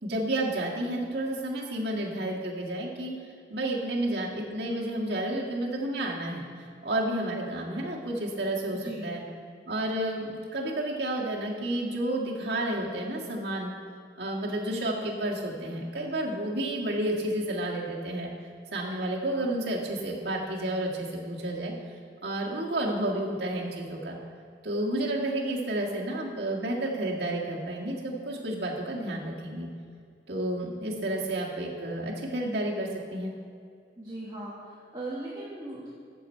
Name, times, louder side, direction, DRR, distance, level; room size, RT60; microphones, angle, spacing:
voice 1, 0.0-3.1 3.5-6.4 6.8-9.2 9.7-13.7 14.2-18.3 18.7-21.7 22.2-24.2 24.6-29.7 30.3-33.3, right 1 dB, 75° right, -3 dB, 1.9 m, -31 dB
voice 2, 8.7-9.2 34.0-36.0, right 1 dB, 25° right, -7 dB, 1.5 m, -39 dB
13.5 x 7.0 x 4.6 m, 2.2 s
head